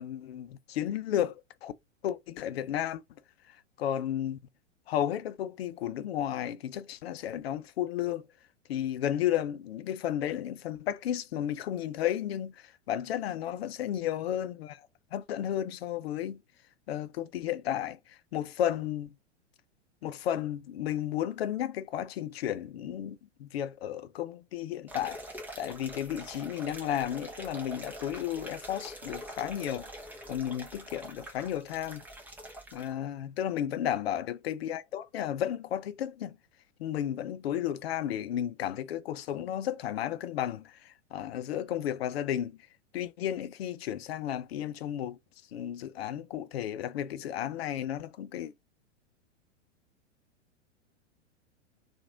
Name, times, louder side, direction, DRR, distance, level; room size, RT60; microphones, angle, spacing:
voice 1, 0.0-1.7 2.0-3.0 3.8-4.4 4.9-8.3 8.7-12.5 12.9-14.8 15.1-16.4 16.9-18.0 18.3-19.1 20.0-25.2 25.6-29.9 30.3-32.0 32.7-36.4 36.8-40.7 41.1-42.6 42.9-45.2 45.5-48.5, left 11 dB, 55° left, 0.5 m, -33 dB
sound 1, 24.9-32.9, right 1 dB, 5° right, 0.7 m, -45 dB
2.9 x 2.5 x 3.7 m
figure-of-eight pair, 100°, 37 cm